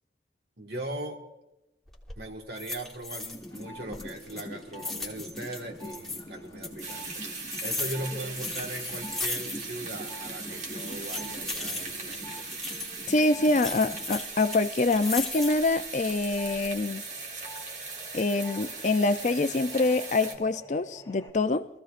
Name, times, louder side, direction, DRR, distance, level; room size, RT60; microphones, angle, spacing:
voice 1, 0.6-1.2 2.2-7.2 7.6-12.5, right 1 dB, 65° right, 2 dB, 1.7 m, -39 dB
sound 1, 1.9-2.2 2.6-3.6 3.9-6.2 6.6-9.8 10.1-10.2 10.7-13.0 13.6-15.7 16.2-16.7, left 3 dB, ahead, 1.4 m, -37 dB
sound 2, 3.3-14.6 14.9-21.3, equal, 20° left, 2.4 m, -45 dB
sound 3, 6.8-20.3, right 4 dB, 40° right, 1.5 m, -39 dB
voice 2, 13.1-17.0 18.1-21.7, left 2 dB, 40° left, 11 dB, 0.4 m, -25 dB
22.5 x 14.5 x 2.5 m, 0.95 s
head